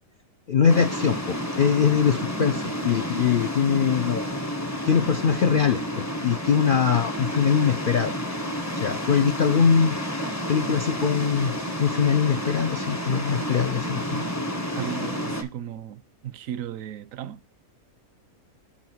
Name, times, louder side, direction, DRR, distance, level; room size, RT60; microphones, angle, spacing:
voice 1, 0.5-4.2 4.8-8.1 8.7-10.0 10.5-11.5 11.8-14.3, left 6 dB, 70° left, 0.5 m, -22 dB
sound 1, 0.7-15.4, equal, 15° left, 0.7 m, -30 dB
voice 2, 14.7-17.4, right 10 dB, 70° right, 0.9 m, -36 dB
5.8 x 5.7 x 4.4 m
omnidirectional pair, 1.5 m